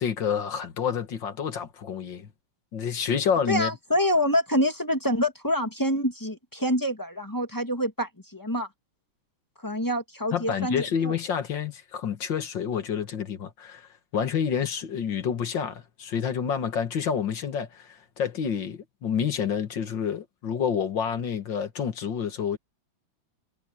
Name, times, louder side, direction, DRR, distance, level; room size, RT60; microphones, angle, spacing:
voice 1, 0.0-2.3 2.7-3.7 10.3-22.6, left 7 dB, 60° left, 2.2 m, -28 dB
voice 2, 3.5-8.7 9.6-11.1, equal, 10° left, 1.5 m, -26 dB
omnidirectional pair, 2.3 m